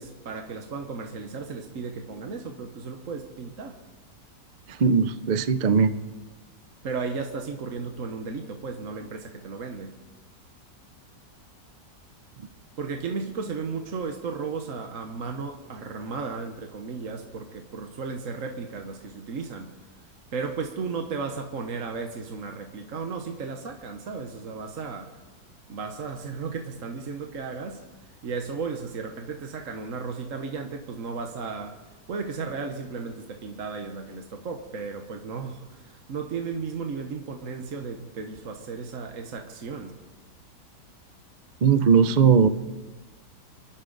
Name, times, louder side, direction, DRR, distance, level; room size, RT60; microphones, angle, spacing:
voice 1, 0.0-3.8 6.8-10.0 12.8-19.7 20.3-25.1 25.7-27.8 28.2-31.8 32.1-40.0, right 4 dB, 50° right, 4 dB, 1.3 m, -34 dB
voice 2, 4.7-5.9 41.6-42.5, right 6 dB, 80° right, 12 dB, 0.4 m, -19 dB
26.5 x 11.5 x 4.0 m, 1.2 s
omnidirectional pair, 1.9 m